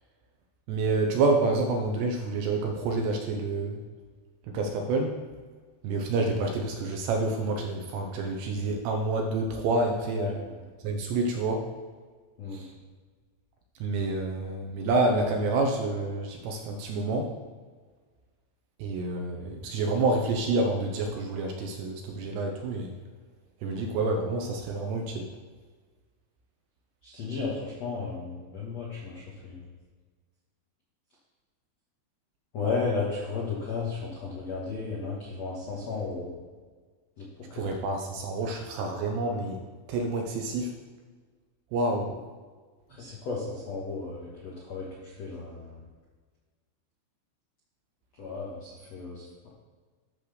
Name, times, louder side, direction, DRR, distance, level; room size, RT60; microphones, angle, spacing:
voice 1, 0.7-3.8 4.5-5.1 5.8-10.4 10.8-11.6 12.5-12.7 13.8-17.3 18.8-22.9 23.6-25.3 37.5-39.6 39.9-40.7 41.7-42.1, right 2 dB, 75° right, 2 dB, 2.6 m, -28 dB
voice 2, 10.2-10.5 12.4-12.6 27.0-29.6 32.5-36.3 37.2-37.3 37.5-37.6 42.9-44.9 45.2-45.8 48.2-49.5, left 4 dB, 80° left, -5 dB, 1.5 m, -34 dB
11.0 x 4.0 x 6.8 m, 1.5 s
omnidirectional pair, 5.6 m